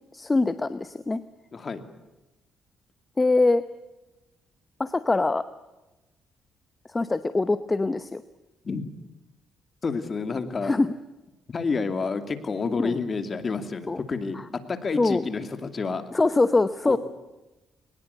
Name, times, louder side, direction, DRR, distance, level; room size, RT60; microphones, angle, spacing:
voice 1, 0.1-1.2 3.2-3.6 4.8-5.4 6.9-8.2 10.6-10.9 12.8-13.0 13.9-14.0 15.0-15.3 16.1-17.0, left 3 dB, 20° left, 12 dB, 0.9 m, -23 dB
voice 2, 9.8-10.7 11.5-14.4 14.7-16.0 16.8-17.0, left 4 dB, 40° left, 9 dB, 2.6 m, -29 dB
22.0 x 20.0 x 8.2 m, 1.0 s
cardioid pair, 90°, 0 cm